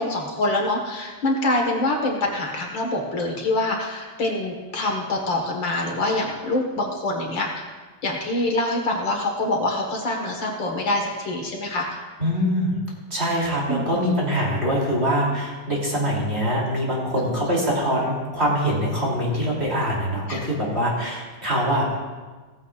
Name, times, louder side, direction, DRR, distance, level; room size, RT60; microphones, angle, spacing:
voice 1, 0.0-7.7 8.0-12.0 13.7-14.1 20.3-20.4, left 2 dB, 60° left, 1 dB, 2.2 m, -25 dB
voice 2, 12.2-12.7 13.1-22.0, equal, 30° right, -4 dB, 3.1 m, -23 dB
17.0 x 14.5 x 2.5 m, 1.3 s
omnidirectional pair, 2.4 m